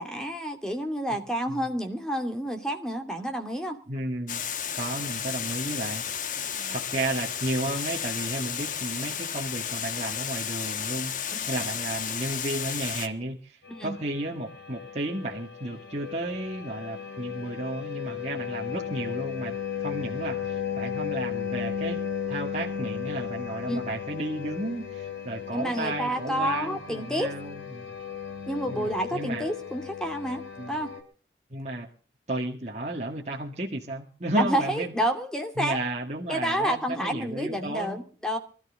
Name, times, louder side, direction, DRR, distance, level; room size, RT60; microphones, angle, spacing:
voice 1, 0.0-3.8 6.4-6.8 11.3-11.5 13.7-13.9 23.7-23.9 25.5-27.3 28.5-30.9 34.4-35.8 36.3-38.4, right 1 dB, 5° left, 5 dB, 2.6 m, -29 dB
voice 2, 3.9-4.4 4.7-6.0 6.7-27.9 28.7-29.5 30.6-30.8 31.5-31.9 32.3-34.9 35.6-38.0, right 1 dB, 40° right, -2 dB, 2.1 m, -33 dB
Water, 4.3-13.1, left 8 dB, 45° left, 1.3 m, -33 dB
sound 1, 13.6-31.0, left 8 dB, 80° left, 4.4 m, -35 dB
24.0 x 14.0 x 3.8 m, 0.39 s
head